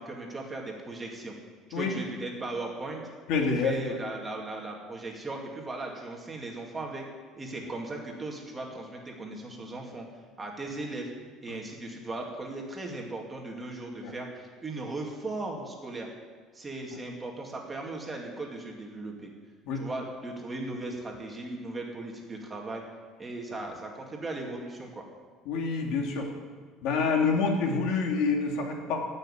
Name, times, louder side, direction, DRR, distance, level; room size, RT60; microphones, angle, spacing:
voice 1, 0.0-1.3 1.7-3.0 3.5-7.1 7.4-10.1 10.4-11.1 11.4-16.1 16.5-19.3 19.7-22.8 23.2-25.0, right 2 dB, 15° right, 0 dB, 2.3 m, -37 dB
voice 2, 3.3-4.0 11.5-11.6 14.0-14.1 19.7-19.8 25.5-26.3 26.8-29.1, left 4 dB, 65° left, 1 dB, 2.6 m, -27 dB
16.5 x 6.7 x 9.9 m, 1.5 s
cardioid pair, 155°, 0 cm